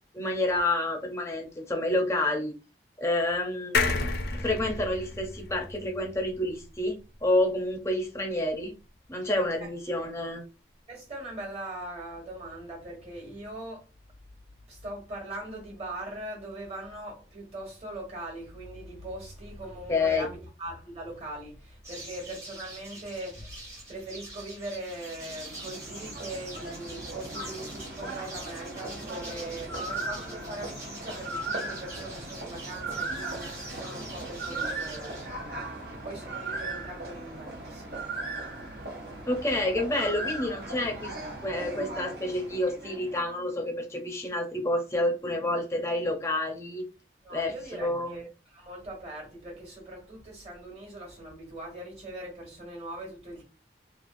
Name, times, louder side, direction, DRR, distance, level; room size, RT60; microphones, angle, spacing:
voice 1, 0.1-2.5 3.0-3.8 4.4-8.7 9.1-10.4 19.9-20.2 39.3-41.1 41.4-46.8 47.3-48.2, left 1 dB, 15° left, 0.6 m, -29 dB
sound 1, 3.7-7.2 7.6-7.7 7.9-8.0, left 3 dB, 65° left, 0.5 m, -31 dB
voice 2, 10.9-13.9 14.7-23.6 23.9-38.1 47.2-53.5, right 1 dB, 35° right, 1.3 m, -41 dB
sound 2, 21.8-35.2, right 2 dB, 15° right, 0.8 m, -45 dB
sound 3, 24.9-43.3, right 2 dB, 65° right, 0.9 m, -38 dB
3.1 x 2.4 x 2.5 m
head